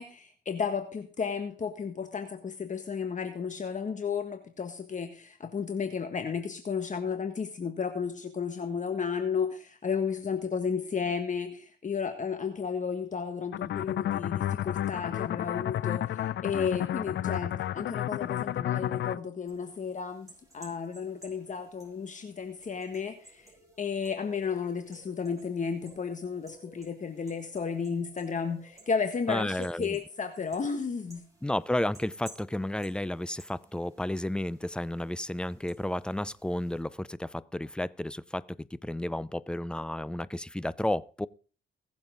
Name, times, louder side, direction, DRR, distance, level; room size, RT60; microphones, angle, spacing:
voice 1, 0.0-20.3 20.5-23.5 23.8-31.2, left 6 dB, 40° left, 1.7 m, -33 dB
sound 1, 13.5-19.2, left 12 dB, 65° left, 0.6 m, -31 dB
sound 2, 19.5-36.8, right 2 dB, 15° right, 6.4 m, -56 dB
voice 2, 29.3-30.0 31.4-41.3, left 1 dB, 5° left, 0.5 m, -32 dB
20.5 x 7.4 x 3.9 m
cardioid pair, 90°, 20 cm